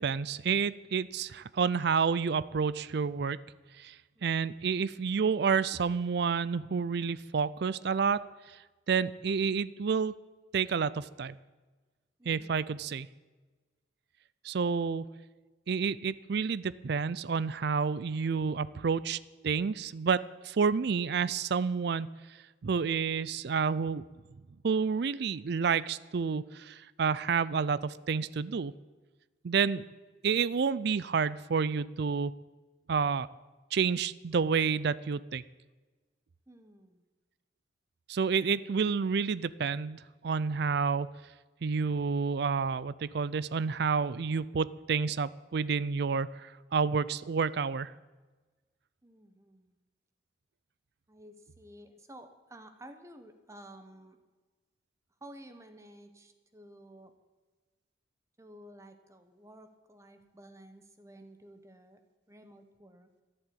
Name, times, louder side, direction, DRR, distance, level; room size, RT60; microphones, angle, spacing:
voice 1, 0.0-3.4 3.8-4.0 4.2-8.3 8.9-10.1 10.5-11.3 12.3-13.1 14.4-15.0 15.7-19.2 19.4-22.1 22.6-24.0 24.6-28.7 29.4-29.8 30.2-32.3 32.9-33.3 33.7-35.4 38.1-41.1 41.6-47.9, right 5 dB, 60° right, 18 dB, 0.4 m, -29 dB
voice 2, 12.2-12.5 36.5-37.1 49.0-49.8 51.1-54.2 55.2-57.1 58.4-62.0 62.3-63.1, right 1 dB, 15° right, 8 dB, 1.1 m, -53 dB
13.5 x 11.0 x 8.5 m, 1.3 s
head